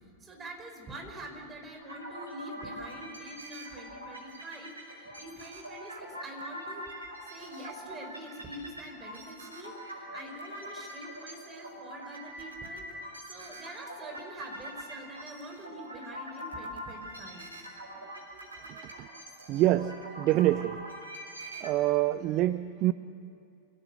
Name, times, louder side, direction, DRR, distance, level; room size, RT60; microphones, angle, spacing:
voice 1, 0.2-6.9 7.2-12.9 13.2-17.5, right 1 dB, 20° right, 3 dB, 4.8 m, -45 dB
sound 1, 1.8-21.7, equal, 75° right, 5.5 m, -44 dB
voice 2, 18.6-19.1 19.5-20.8 21.6-22.9, right 15 dB, 40° right, 14 dB, 0.6 m, -26 dB
27.5 x 17.0 x 8.1 m, 2.7 s
figure-of-eight pair, 90°, 0 cm